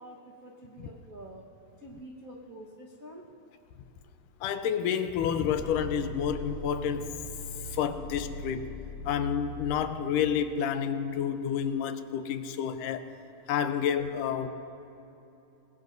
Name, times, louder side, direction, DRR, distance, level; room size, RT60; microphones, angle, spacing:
voice 1, 0.0-1.5 1.8-3.3, right 1 dB, 75° right, -3 dB, 0.8 m, -47 dB
voice 2, 4.4-7.1 7.7-8.7 9.1-13.1 13.5-14.5, left 8 dB, 90° left, 9 dB, 2.4 m, -29 dB
sound 1, 5.4-10.3, left 1 dB, 70° left, 5.2 m, -41 dB
26.0 x 20.5 x 2.7 m, 2.9 s
omnidirectional pair, 3.7 m